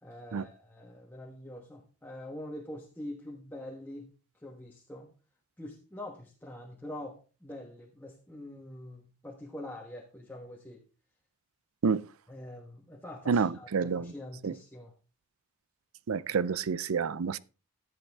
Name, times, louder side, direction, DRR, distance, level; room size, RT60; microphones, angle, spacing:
voice 1, 0.0-4.1 4.4-5.1 5.6-10.8 12.3-14.9, left 1 dB, 10° left, 1.2 m, -44 dB
voice 2, 13.3-14.1 14.4-14.6 16.1-17.4, right 5 dB, 80° right, 0.5 m, -28 dB
14.5 x 7.8 x 3.5 m
head